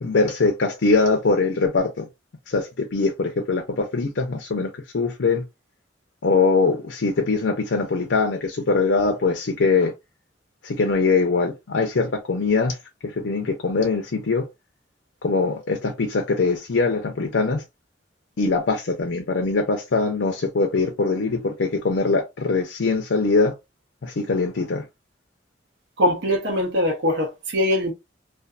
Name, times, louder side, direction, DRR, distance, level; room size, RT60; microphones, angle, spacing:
voice 1, 0.0-2.1 2.5-5.4 6.2-9.9 10.6-12.8 13.2-14.5 15.2-17.6 18.4-23.5 24.0-24.8, left 4 dB, 75° left, 0.5 m, -22 dB
voice 2, 26.0-27.9, left 1 dB, 65° right, 0.7 m, -22 dB
2.5 x 2.3 x 2.2 m
head